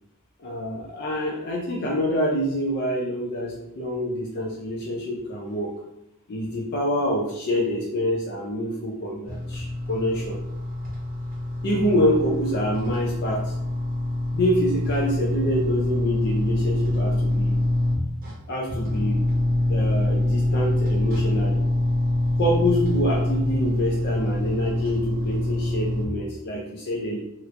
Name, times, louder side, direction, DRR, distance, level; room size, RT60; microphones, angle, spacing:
voice 1, 0.4-5.7 6.3-10.4 11.6-13.6 14.3-17.6 18.5-19.3 19.7-21.7 22.4-27.2, equal, 50° left, -2 dB, 0.4 m, -26 dB
sound 1, 9.3-18.3 18.7-26.1, left 1 dB, 40° right, 0.8 m, -25 dB
2.9 x 2.4 x 3.2 m, 0.84 s
head